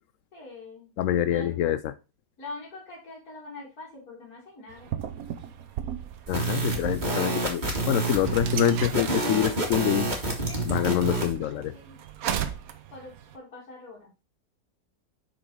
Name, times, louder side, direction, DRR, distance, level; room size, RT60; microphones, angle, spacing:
voice 1, 0.3-0.9 1.3-1.6 2.4-4.9 8.3-8.5 10.4-12.0 12.9-14.1, left 2 dB, 55° left, -6 dB, 2.9 m, -44 dB
voice 2, 1.0-1.9 6.3-10.1 10.6-11.8, left 11 dB, 85° left, 14 dB, 0.7 m, -26 dB
sound 1, 4.7-13.4, right 9 dB, 60° right, 1.1 m, -37 dB
sound 2, 6.3-11.3, right 2 dB, 25° right, 2.0 m, -28 dB
5.9 x 5.3 x 4.6 m, 0.29 s
omnidirectional pair, 1.9 m